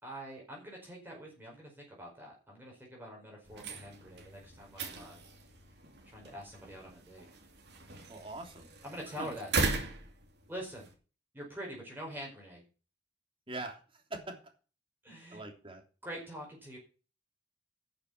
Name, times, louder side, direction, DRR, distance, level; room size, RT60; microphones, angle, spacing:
voice 1, 0.0-5.2 6.1-7.2 8.8-9.8 10.5-10.9 11.3-12.6 15.0-15.4 16.0-16.8, equal, 10° right, -2 dB, 4.8 m, -45 dB
sound 1, 3.4-10.9, right 3 dB, 60° right, 3.0 m, -39 dB
voice 2, 8.1-8.7 9.1-9.3 13.5-14.3 15.3-15.8, right 2 dB, 30° right, 3 dB, 3.3 m, -43 dB
12.0 x 6.9 x 6.1 m, 0.35 s
head